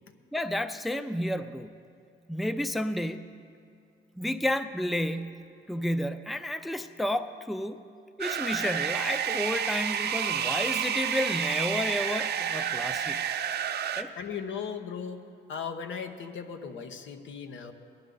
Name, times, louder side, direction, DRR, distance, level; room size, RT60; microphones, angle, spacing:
voice 1, 0.3-1.7 2.3-3.3 4.2-7.8 8.2-13.2 14.0-14.1, left 1 dB, ahead, 11 dB, 0.5 m, -31 dB
sound 1, 8.2-14.0, right 8 dB, 55° right, 0.7 m, -30 dB
voice 2, 14.2-15.2 15.5-17.7, left 6 dB, 75° left, 7 dB, 1.0 m, -37 dB
20.0 x 11.0 x 3.9 m, 2.4 s
cardioid pair, 90°, 20 cm